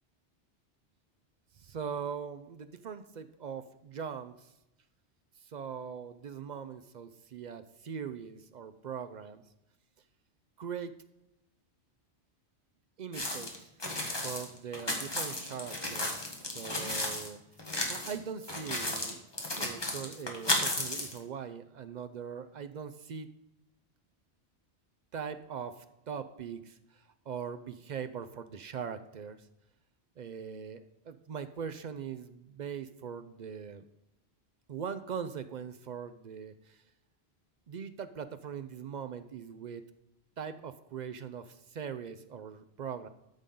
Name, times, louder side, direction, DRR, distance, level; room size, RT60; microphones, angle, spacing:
voice 1, 1.6-4.5 5.4-9.4 10.6-10.9 13.0-13.7 14.2-17.4 17.9-19.2 19.6-23.3 25.1-29.5 30.2-33.8 34.7-36.8 37.7-39.8 40.4-43.1, right 7 dB, 55° right, 11 dB, 0.5 m, -41 dB
sound 1, 13.1-17.3 17.6-18.1 18.4-21.2, left 1 dB, 20° left, 1.3 m, -34 dB
13.0 x 5.4 x 3.7 m, 0.91 s
omnidirectional pair, 1.2 m